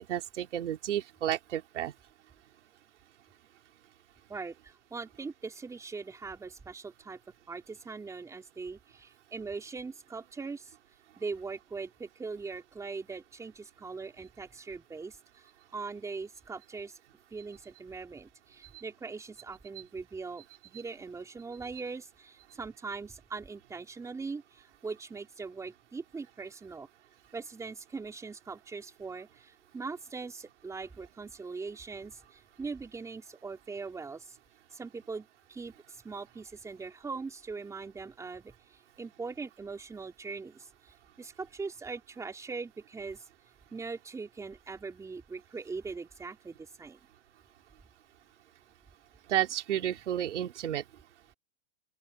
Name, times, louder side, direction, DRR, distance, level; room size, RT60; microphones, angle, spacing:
voice 1, 0.0-1.9 49.3-50.8, right 11 dB, 80° right, 4.3 m, -31 dB
voice 2, 4.3-7.2 7.5-10.7 11.2-15.5 15.7-17.0 17.3-26.9 27.3-34.4 34.7-43.2 43.7-47.0, right 4 dB, 10° right, 3.9 m, -41 dB
open air
supercardioid pair, 155°, 35 cm